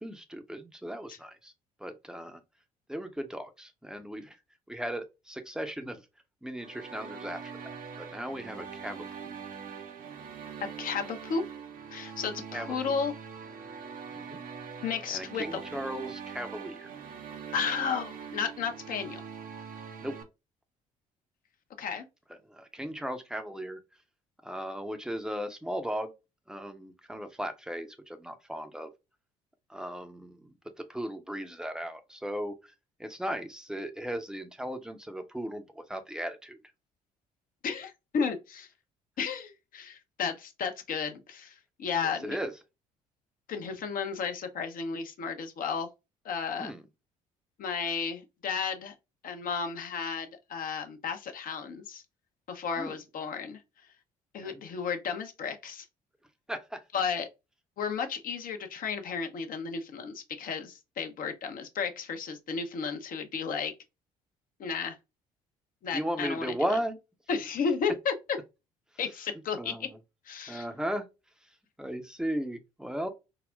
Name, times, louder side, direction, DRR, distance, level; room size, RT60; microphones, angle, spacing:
voice 1, 0.0-1.5 1.8-2.4 2.9-4.4 4.7-6.1 6.4-7.7 8.0-9.4 12.5-12.9 14.1-14.4 15.1-16.9 20.0-20.2 22.4-23.8 24.4-26.1 26.5-28.9 29.7-32.7 33.0-36.6 42.0-42.5 46.6-46.9 52.8-53.0 54.4-54.6 56.5-56.8 65.9-67.0 69.6-70.0 70.5-71.1 71.4-71.5 71.8-73.1, equal, 5° right, 0.7 m, -36 dB
sound 1, 6.6-20.2, right 6 dB, 50° right, 0.7 m, -43 dB
voice 2, 10.6-11.4 11.9-13.1 14.8-15.6 17.5-19.2 21.8-22.0 37.6-38.7 39.2-42.4 43.5-45.9 46.2-46.7 47.6-48.9 49.2-52.0 52.5-53.6 54.3-55.8 56.9-57.3 57.8-63.7 64.6-65.0 65.8-66.5 67.3-68.4 69.0-69.9 70.3-70.7, left 6 dB, 50° left, 0.7 m, -33 dB
3.8 x 2.0 x 2.2 m
hypercardioid pair, 50°, 18 cm